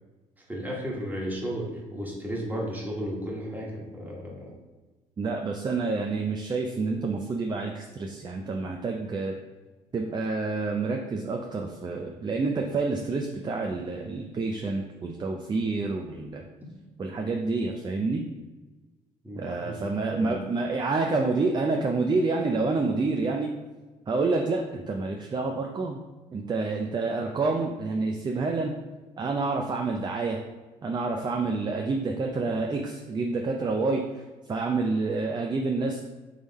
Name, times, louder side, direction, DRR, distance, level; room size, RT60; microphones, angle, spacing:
voice 1, 0.5-4.5 16.6-16.7 19.2-19.8 20.1-20.4, equal, 10° right, -3 dB, 1.4 m, -34 dB
voice 2, 5.2-9.3 9.9-16.5 17.0-18.3 19.4-23.5 24.1-26.0 26.3-28.7 29.2-30.4 30.8-34.0 34.5-36.0, right 3 dB, 30° right, 2 dB, 0.5 m, -28 dB
3.7 x 3.3 x 4.1 m, 1.2 s
supercardioid pair, 75°, 15 cm